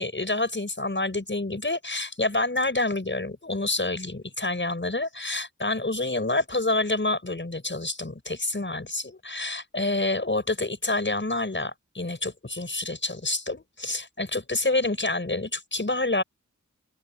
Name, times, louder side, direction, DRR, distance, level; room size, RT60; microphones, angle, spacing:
voice 1, 0.0-16.2, left 2 dB, 40° left, 6.5 m, -28 dB
open air
wide cardioid pair, 65°, 31 cm